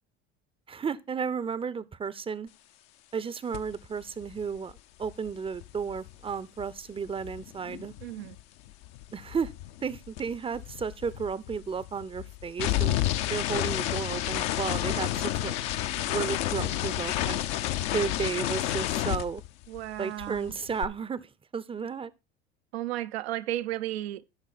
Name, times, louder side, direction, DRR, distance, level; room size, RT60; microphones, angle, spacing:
voice 1, 0.7-2.5 3.1-4.7 5.0-7.9 9.1-9.5 9.8-13.0 13.3-15.6 16.0-17.4 17.9-19.4 20.0-22.1, right 6 dB, 15° right, 0.6 m, -33 dB
sound 1, 3.5-3.8 4.0-8.4 8.7-19.9 20.2-20.8, left 13 dB, 60° left, 0.8 m, -31 dB
voice 2, 8.0-8.4 19.7-20.5 22.7-24.4, right 14 dB, 75° right, 0.7 m, -34 dB
13.0 x 6.1 x 4.1 m
hypercardioid pair, 70°, 32 cm